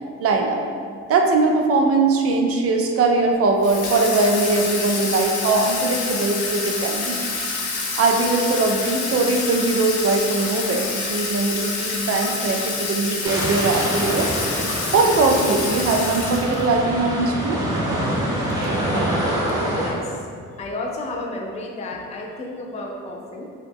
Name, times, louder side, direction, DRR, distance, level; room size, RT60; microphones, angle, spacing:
voice 1, 0.2-0.6 1.1-7.3 8.0-14.3 14.9-17.6, right 3 dB, 50° right, 3 dB, 0.4 m, -20 dB
Water tap faucet / Sink (filling or washing), 3.6-16.8, left 3 dB, 90° left, 0.6 m, -27 dB
sound 1, 13.2-19.9, right 1 dB, 10° right, 0.7 m, -25 dB
voice 2, 19.6-20.2 20.6-23.4, left 2 dB, 25° left, 0 dB, 0.4 m, -32 dB
2.9 x 2.3 x 3.4 m, 2.2 s
cardioid pair, 90°, 30 cm